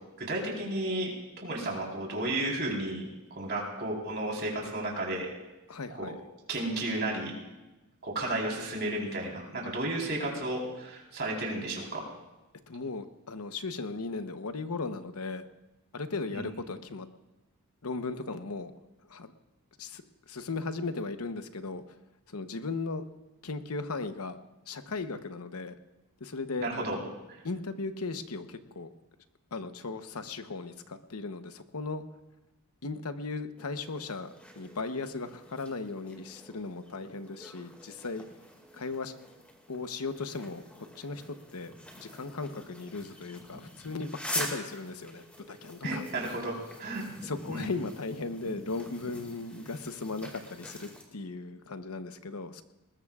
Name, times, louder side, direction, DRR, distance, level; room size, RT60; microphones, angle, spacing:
voice 1, 0.2-1.1 1.4-5.3 6.0-6.1 6.5-7.3 8.0-12.0 16.3-16.4 26.6-27.0 27.3-27.4 45.8-47.0 47.5-47.6, right 1 dB, 50° right, -2 dB, 4.0 m, -33 dB
voice 2, 5.7-6.2 12.7-15.4 15.9-17.1 17.8-18.7 19.1-19.3 19.8-21.8 22.3-23.0 23.4-24.4 24.7-25.8 26.2-26.7 27.4-28.9 29.5-32.0 32.8-38.3 38.7-39.1 39.7-46.0 47.2-52.6, left 3 dB, 80° left, 9 dB, 0.9 m, -37 dB
sound 1, 33.6-51.0, equal, 5° left, 2.1 m, -44 dB
20.5 x 20.0 x 2.4 m, 1.0 s
head